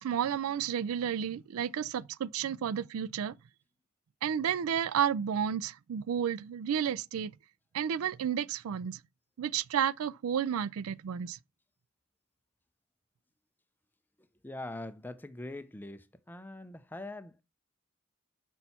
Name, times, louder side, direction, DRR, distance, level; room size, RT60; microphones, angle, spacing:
voice 1, 0.0-3.3 4.2-7.3 7.7-9.0 9.4-11.4, right 8 dB, 80° right, 0.4 m, -31 dB
voice 2, 14.2-17.4, left 2 dB, 10° left, 0.5 m, -43 dB
6.1 x 5.5 x 4.2 m
head